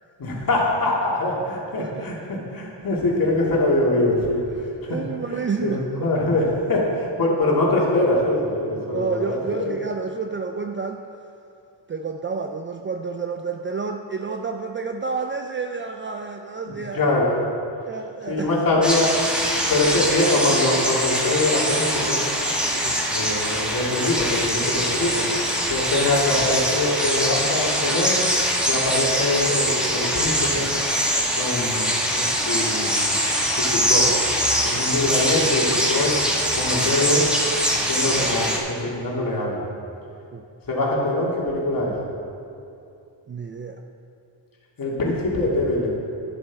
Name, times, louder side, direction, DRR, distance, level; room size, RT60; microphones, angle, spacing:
voice 1, 0.2-2.1 2.5-4.4 4.8-5.0 5.6-6.4 6.7-9.7 16.7-17.3 18.3-19.1 19.7-22.2 23.1-25.3 25.7-28.2 28.6-30.7 31.4-31.9 32.1-32.9 33.7-34.1 34.6-36.1 36.5-37.3 37.7-39.6 40.7-41.9 44.8-45.9, left 2 dB, 45° left, -4 dB, 2.5 m, -23 dB
voice 2, 1.8-2.1 4.6-6.1 8.9-11.0 11.9-17.0 17.9-18.6 22.7-23.0 34.7-34.9 40.3-40.4 43.3-43.8, right 5 dB, 25° right, 4 dB, 0.4 m, -30 dB
sound 1, 18.8-38.6, equal, ahead, 1.5 m, -23 dB
11.0 x 10.5 x 3.6 m, 2.6 s
cardioid pair, 100°, 47 cm